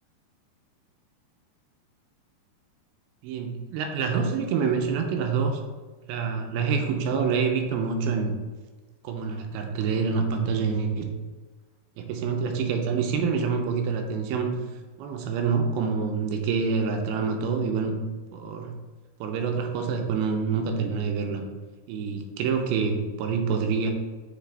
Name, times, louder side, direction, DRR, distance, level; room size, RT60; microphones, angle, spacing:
voice 1, 3.2-5.6 6.1-8.3 9.0-11.1 12.0-14.6 15.0-18.0 18.3-18.7 19.2-21.4 21.9-23.9, right 5 dB, 80° right, 4 dB, 2.4 m, -26 dB
7.4 x 4.1 x 3.3 m, 1.3 s
omnidirectional pair, 4.7 m